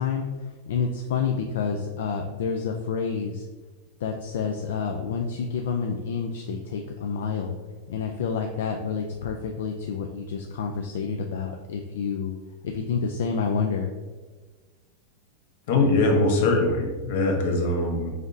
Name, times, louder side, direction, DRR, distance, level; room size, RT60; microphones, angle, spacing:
voice 1, 0.0-3.5 4.0-7.6 7.9-12.3 12.6-13.9, left 5 dB, 80° left, 3 dB, 0.4 m, -29 dB
voice 2, 15.7-18.1, left 2 dB, 65° left, 2 dB, 1.0 m, -22 dB
5.0 x 3.9 x 2.6 m, 1.3 s
supercardioid pair, 150°, 0 cm